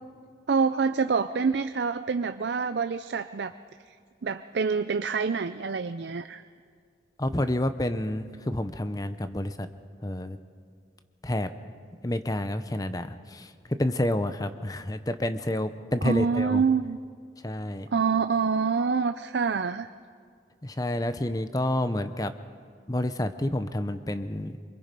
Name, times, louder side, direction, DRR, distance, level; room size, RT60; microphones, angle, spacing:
voice 1, 0.5-3.5 4.2-6.4 16.0-17.0 17.9-19.9, right 5 dB, 75° right, 9 dB, 0.5 m, -26 dB
voice 2, 7.2-9.7 10.0-10.4 11.2-11.5 12.0-16.6 17.4-17.9 20.6-22.3 22.9-24.6, left 1 dB, 20° left, 10 dB, 0.8 m, -29 dB
25.5 x 23.5 x 5.3 m, 2.1 s
head